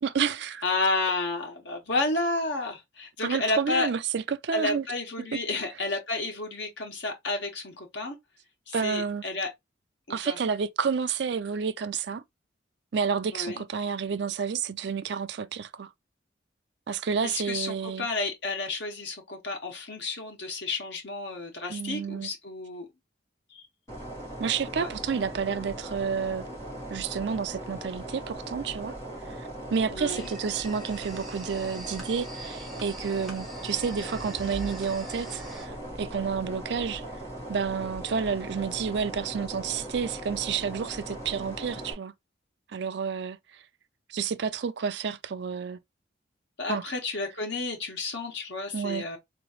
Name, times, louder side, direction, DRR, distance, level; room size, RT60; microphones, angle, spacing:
voice 1, 0.0-0.6 3.2-4.9 8.7-9.2 10.1-12.2 12.9-15.9 16.9-18.1 21.7-22.3 24.4-26.4 26.9-28.9 29.4-37.0 37.5-42.1 42.7-43.6 44.1-45.8 46.7-46.9 48.7-49.0, right 6 dB, 65° right, 0.4 m, -30 dB
voice 2, 0.6-3.9 4.5-8.2 8.7-9.5 10.1-10.4 13.3-13.6 17.2-22.9 23.5-23.6 24.8-24.9 29.9-30.3 46.6-49.2, left 3 dB, 70° left, 1.4 m, -31 dB
sound 1, 23.9-41.9, right 1 dB, 15° left, 2.5 m, -39 dB
sound 2, 30.2-35.7, right 1 dB, ahead, 1.1 m, -45 dB
sound 3, 34.0-37.2, right 1 dB, 30° right, 0.8 m, -46 dB
3.8 x 3.0 x 2.9 m
head